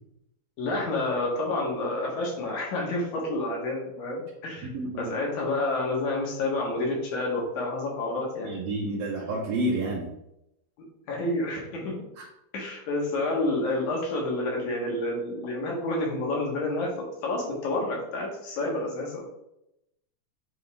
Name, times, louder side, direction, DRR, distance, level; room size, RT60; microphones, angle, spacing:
voice 1, 0.6-4.7 5.0-8.5 11.1-12.0 12.5-16.9 17.2-19.3, left 2 dB, 70° left, -2 dB, 2.7 m, -29 dB
voice 2, 4.7-5.1 8.4-10.1 12.2-12.3, right 1 dB, 70° right, -3 dB, 2.1 m, -29 dB
7.8 x 3.6 x 3.5 m, 0.84 s
omnidirectional pair, 3.5 m